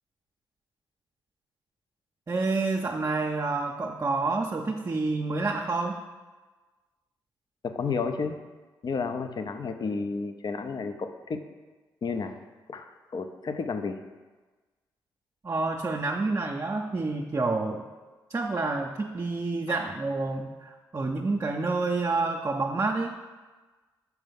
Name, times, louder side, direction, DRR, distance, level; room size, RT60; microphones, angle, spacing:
voice 1, 2.3-6.0 15.4-17.8 18.3-23.1, right 3 dB, 35° right, 1 dB, 0.6 m, -28 dB
voice 2, 7.6-8.4 8.8-11.4 12.0-12.4 12.7-14.0 19.7-19.8, left 4 dB, 50° left, 8 dB, 0.6 m, -32 dB
5.3 x 4.7 x 5.2 m, 1.3 s
supercardioid pair, 45°, 9 cm